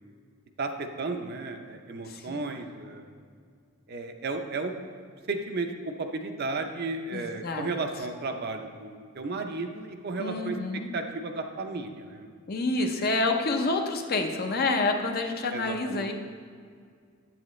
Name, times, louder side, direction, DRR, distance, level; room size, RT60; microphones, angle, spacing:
voice 1, 0.6-3.1 3.9-4.7 5.3-10.6 10.9-12.3 15.5-16.1, right 3 dB, 50° right, 5 dB, 0.6 m, -34 dB
voice 2, 2.1-2.4 7.1-7.7 10.2-10.9 12.5-16.1, left 2 dB, 50° left, 4 dB, 0.6 m, -28 dB
8.3 x 7.5 x 3.1 m, 2.1 s
head